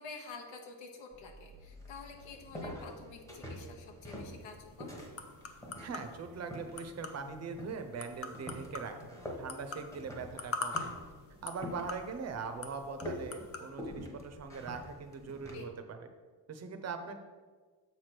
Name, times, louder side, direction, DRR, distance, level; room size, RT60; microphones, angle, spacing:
voice 1, 0.0-4.9 15.5-15.7, left 4 dB, 80° left, 3 dB, 0.9 m, -49 dB
sound 1, 1.1-15.6, left 1 dB, 5° left, 0.9 m, -47 dB
sound 2, 4.3-13.7, left 4 dB, 35° left, 0.6 m, -45 dB
voice 2, 5.8-10.9 11.4-16.0 16.5-17.2, right 5 dB, 35° right, 7 dB, 0.6 m, -41 dB
7.0 x 3.3 x 5.9 m, 1.4 s
cardioid pair, 160°, 45 cm